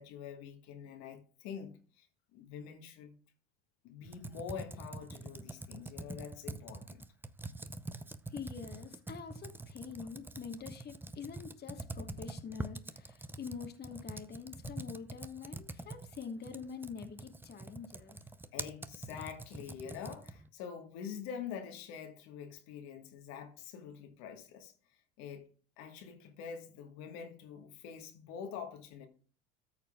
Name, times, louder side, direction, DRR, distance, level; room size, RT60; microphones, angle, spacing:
voice 1, 0.0-2.1 2.3-3.1 3.8-7.0 18.5-24.7 25.2-29.1, left 7 dB, 65° left, 1.5 m, -46 dB
Computer keyboard, 4.1-20.5, right 2 dB, 5° right, 0.5 m, -45 dB
voice 2, 8.3-18.2, left 6 dB, 35° left, 1.3 m, -45 dB
13.5 x 6.6 x 2.3 m
hypercardioid pair, 75°, 30 cm